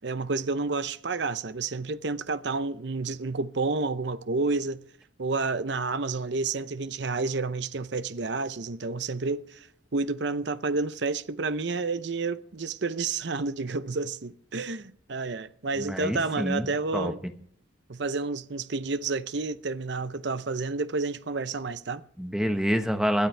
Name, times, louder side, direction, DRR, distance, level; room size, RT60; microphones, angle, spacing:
voice 1, 0.0-4.8 5.2-9.7 9.9-17.2 17.9-22.0, right 3 dB, 65° right, 0.7 m, -30 dB
voice 2, 15.8-17.1 22.2-23.3, equal, 5° right, 1.2 m, -27 dB
21.0 x 13.0 x 3.4 m
head